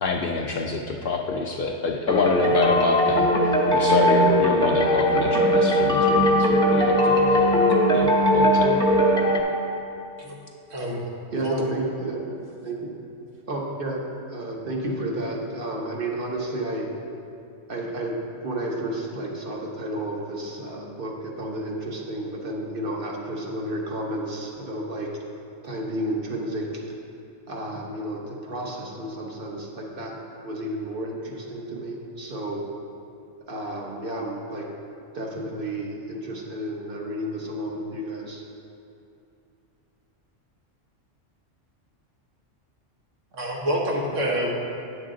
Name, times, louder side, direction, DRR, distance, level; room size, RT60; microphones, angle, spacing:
voice 1, 0.0-7.5 7.9-8.8, left 4 dB, 60° left, 1 dB, 0.6 m, -26 dB
sound 1, 2.1-9.4, equal, 5° left, 0.6 m, -19 dB
voice 2, 10.7-11.0 11.4-11.7 43.3-44.5, equal, 80° right, -2 dB, 1.5 m, -27 dB
voice 3, 11.3-12.4 12.6-12.9 13.5-14.0 14.3-16.9 17.7-18.1 18.4-25.1 25.6-26.8 27.5-30.1 30.4-32.6 33.5-34.6 35.1-38.4, right 1 dB, 50° right, -1 dB, 1.2 m, -31 dB
9.3 x 6.9 x 3.8 m, 2.6 s
omnidirectional pair, 1.3 m